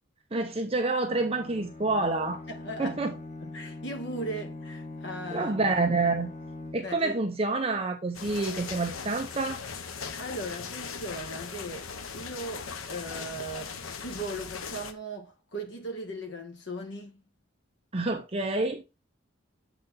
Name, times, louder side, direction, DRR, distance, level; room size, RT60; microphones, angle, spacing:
voice 1, 0.3-2.4 2.8-3.1 5.3-6.3 6.7-9.6 17.9-18.8, right 3 dB, 30° right, 0.7 m, -28 dB
Bowed string instrument, 1.1-7.1, left 2 dB, 35° left, 1.0 m, -42 dB
voice 2, 2.5-3.0 3.4-5.8 6.8-7.1 10.2-13.8 14.0-17.2, right 1 dB, 60° left, 1.5 m, -38 dB
sound 1, 8.1-14.9, left 6 dB, 85° left, 0.8 m, -39 dB
7.9 x 4.1 x 4.0 m
head